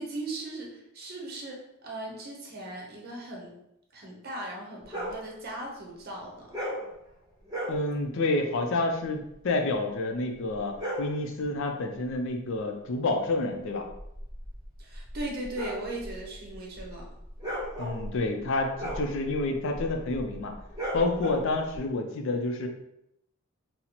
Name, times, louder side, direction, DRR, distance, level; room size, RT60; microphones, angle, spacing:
voice 1, 0.0-3.5 3.9-6.5 14.8-17.1, right 1 dB, 50° right, -1 dB, 0.7 m, -38 dB
sound 1, 4.9-5.2 6.5-6.9 7.4-7.8 10.5-11.2 13.8-21.8, equal, 20° right, 0.8 m, -36 dB
voice 2, 7.7-13.8 17.8-20.5 20.9-22.7, left 2 dB, 65° left, 4 dB, 0.4 m, -29 dB
4.0 x 2.0 x 2.8 m, 0.81 s
head